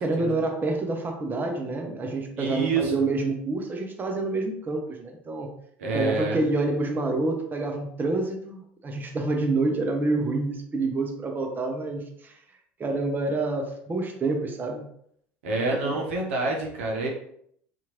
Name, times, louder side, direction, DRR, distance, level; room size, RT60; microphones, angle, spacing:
voice 1, 0.0-5.5 5.9-12.4 12.8-14.9 15.8-16.1, right 3 dB, 30° right, 2 dB, 0.7 m, -27 dB
voice 2, 2.4-2.9 5.8-6.4 15.4-17.1, right 3 dB, 80° right, -1 dB, 0.7 m, -27 dB
2.9 x 2.5 x 2.8 m, 0.68 s
hypercardioid pair, 75°, 7 cm